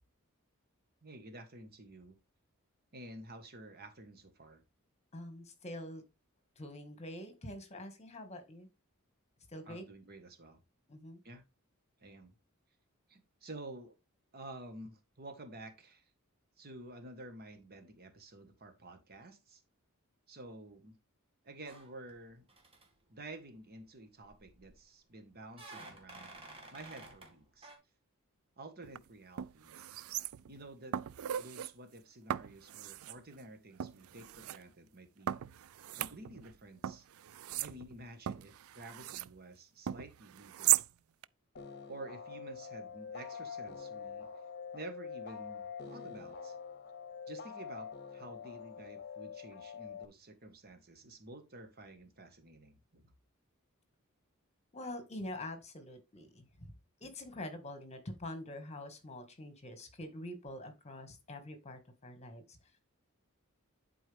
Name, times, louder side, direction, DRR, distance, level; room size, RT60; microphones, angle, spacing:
voice 1, 1.0-2.2 2.9-4.6 9.6-10.6 11.2-11.4 12.0-12.3 13.1-13.9 14.3-16.1 16.6-19.6 20.3-20.9 21.4-22.4 23.1-26.4 26.7-27.7 28.6-30.0 30.5-31.0 31.4-35.4 35.9-37.1 37.6-40.8 41.9-44.3 44.7-46.5 47.3-53.1, right 2 dB, 45° right, 1.5 m, -51 dB
voice 2, 5.1-6.0 6.6-8.7 9.5-9.9 10.9-11.2 54.7-56.7 57.0-62.6, left 1 dB, 30° left, 1.9 m, -45 dB
sound 1, 21.6-22.2 22.5-22.9 24.2-24.8 25.5-27.3 27.6-27.8, right 2 dB, 25° right, 2.1 m, -52 dB
sound 2, 28.8-29.0 29.4-30.6 30.9-31.7 32.3-33.2 33.8-34.6 35.3-36.5 36.8-39.3 39.9-40.9 41.2-41.3, right 13 dB, 75° right, 0.4 m, -36 dB
sound 3, 41.6-50.1, left 6 dB, 50° left, 0.9 m, -45 dB
11.0 x 4.6 x 3.5 m
head